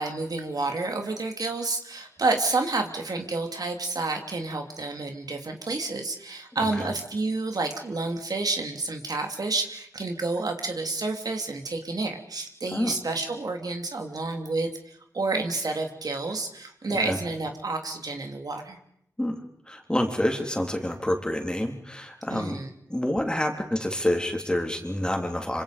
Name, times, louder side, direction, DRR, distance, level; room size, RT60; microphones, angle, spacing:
voice 1, 0.0-18.8 22.3-22.7, right 3 dB, 65° right, 4 dB, 3.1 m, -29 dB
voice 2, 6.6-6.9 12.7-12.9 17.1-17.2 19.2-22.6 22.9-25.6, left 1 dB, 10° left, 3 dB, 3.6 m, -28 dB
26.5 x 25.5 x 5.3 m, 0.71 s
wide cardioid pair, 70°, 7 cm